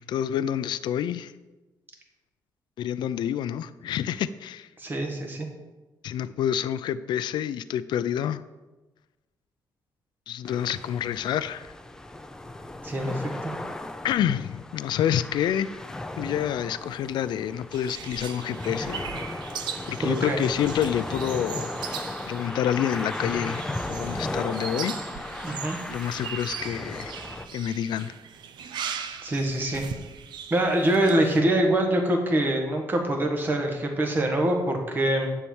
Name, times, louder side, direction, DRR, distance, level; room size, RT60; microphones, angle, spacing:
voice 1, 0.0-1.3 2.8-4.7 6.0-8.4 10.3-11.7 14.0-15.7 16.2-19.1 19.9-21.7 22.3-25.0 25.9-27.1 27.5-28.1, left 10 dB, 80° left, 14 dB, 0.4 m, -28 dB
voice 2, 4.8-5.5 12.8-13.5 20.0-20.4 25.4-25.8 29.2-29.8 30.5-35.3, right 1 dB, 25° right, 2 dB, 1.4 m, -24 dB
sound 1, 10.5-27.5, left 1 dB, 10° left, 0.4 m, -36 dB
sound 2, 17.7-31.4, right 7 dB, 80° right, 0.7 m, -39 dB
10.0 x 4.6 x 7.1 m, 1.1 s
wide cardioid pair, 180°, 8 cm